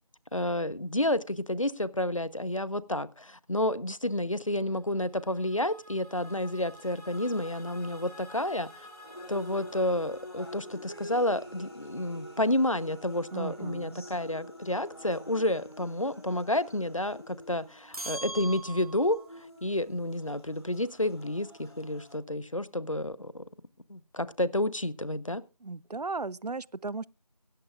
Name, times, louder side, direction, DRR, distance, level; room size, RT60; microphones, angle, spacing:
voice 1, 0.3-8.9 9.3-23.4 23.9-25.4, left 1 dB, 55° left, 0.9 m, -30 dB
sound 1, 4.4-11.6, left 1 dB, 85° left, 6.3 m, -52 dB
sound 2, 6.1-22.1, left 1 dB, 40° left, 2.9 m, -48 dB
voice 2, 13.3-14.1 25.6-27.1, right 3 dB, 85° right, 0.5 m, -36 dB
sound 3, 17.9-19.3, right 2 dB, 65° right, 1.2 m, -40 dB
17.5 x 15.0 x 2.4 m
figure-of-eight pair, 175°, 20 cm